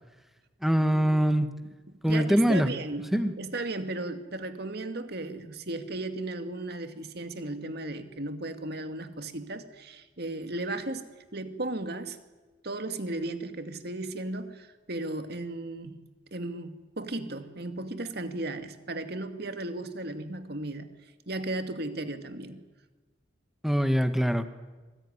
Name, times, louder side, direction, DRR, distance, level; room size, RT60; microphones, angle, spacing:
voice 1, 0.6-1.5 2.0-2.7 3.1-3.3 23.6-24.5, equal, ahead, 9 dB, 1.5 m, -23 dB
voice 2, 1.9-11.1 11.3-12.2 12.6-16.0 16.3-20.9 21.3-22.6, right 2 dB, 60° right, 8 dB, 2.1 m, -35 dB
26.5 x 20.0 x 10.0 m, 1.3 s
head